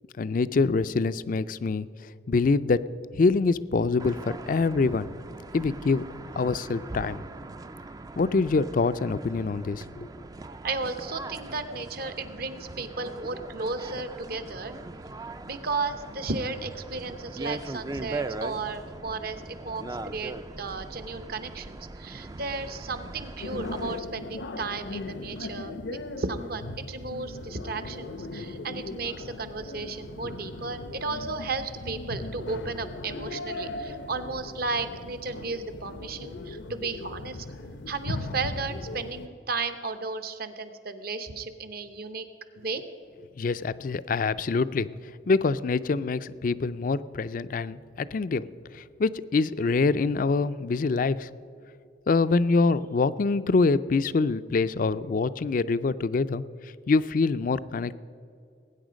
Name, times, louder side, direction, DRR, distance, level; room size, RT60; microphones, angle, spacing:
voice 1, 0.2-1.9 2.3-2.8 3.1-5.1 5.5-6.0 6.4-7.2 8.2-10.1 43.4-44.9 45.3-48.5 48.7-51.3 52.1-56.4 56.9-57.9, left 4 dB, 50° left, 15 dB, 0.4 m, -25 dB
sound 1, 4.0-24.0, right 2 dB, 20° right, 0.4 m, -40 dB
voice 2, 10.6-14.7 15.5-37.4 37.9-42.3 42.6-42.8, right 3 dB, 55° right, 10 dB, 0.9 m, -34 dB
sound 2, 23.4-39.3, left 2 dB, 80° left, 0.7 m, -38 dB
19.5 x 9.4 x 5.1 m, 2.5 s
head